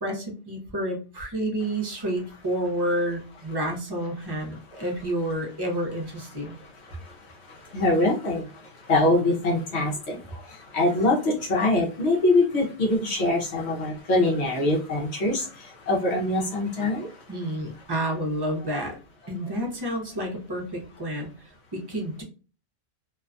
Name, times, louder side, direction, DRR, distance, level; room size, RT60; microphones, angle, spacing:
voice 1, 0.0-6.6 17.3-19.0 19.3-21.3 21.7-22.2, right 1 dB, 25° right, 0 dB, 0.6 m, -29 dB
voice 2, 4.2-4.9 6.2-17.9, left 2 dB, 70° left, -1 dB, 1.0 m, -25 dB
2.6 x 2.2 x 2.4 m, 0.36 s
omnidirectional pair, 1.2 m